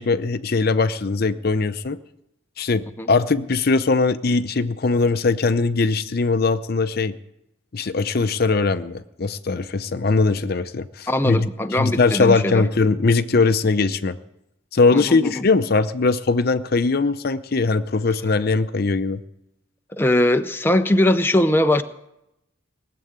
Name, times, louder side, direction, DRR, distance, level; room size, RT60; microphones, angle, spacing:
voice 1, 0.0-2.0 2.6-7.1 7.7-11.5 11.8-14.2 14.7-19.2, left 3 dB, 50° left, 12 dB, 0.6 m, -20 dB
voice 2, 11.1-12.7 14.9-15.4 19.9-21.8, left 1 dB, 10° left, 7 dB, 0.6 m, -20 dB
19.0 x 7.7 x 9.4 m, 0.86 s
head